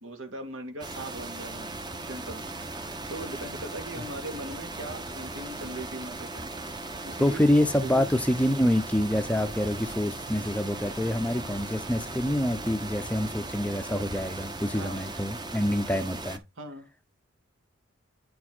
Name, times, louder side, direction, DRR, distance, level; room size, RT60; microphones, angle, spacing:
voice 1, 0.0-1.7 2.1-2.5 3.1-6.5 7.0-7.4 7.8-8.1 14.8-15.0 16.6-16.9, right 1 dB, 70° right, 2.2 m, -39 dB
sound 1, 0.8-16.4, right 2 dB, 20° right, 1.0 m, -38 dB
voice 2, 7.2-16.4, left 1 dB, 5° left, 0.7 m, -26 dB
sound 2, 9.1-14.2, right 1 dB, 45° right, 2.3 m, -46 dB
9.3 x 4.5 x 4.5 m
head